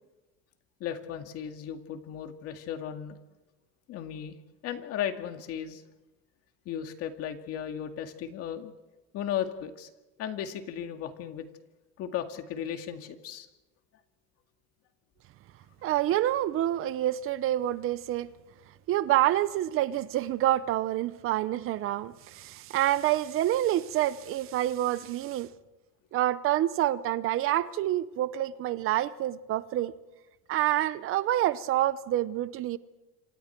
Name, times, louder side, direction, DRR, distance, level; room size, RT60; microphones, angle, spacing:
voice 1, 0.8-3.2 3.9-4.4 4.6-5.8 6.7-8.7 9.1-9.9 10.2-11.5 12.0-13.5, left 9 dB, 55° left, 2.1 m, -35 dB
voice 2, 15.8-18.3 18.9-25.5 26.1-29.9 30.5-32.8, right 13 dB, 45° right, 0.8 m, -27 dB
27.5 x 26.5 x 4.6 m
cardioid pair, 150°, 29 cm